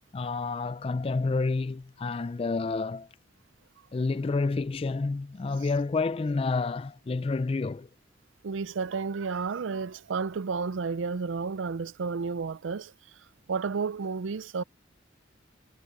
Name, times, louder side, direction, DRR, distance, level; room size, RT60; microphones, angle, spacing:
voice 1, 0.1-3.1 3.9-7.9, left 3 dB, 30° left, 0.3 m, -29 dB
voice 2, 8.4-12.8 13.5-14.6, right 5 dB, 85° right, 0.5 m, -31 dB
head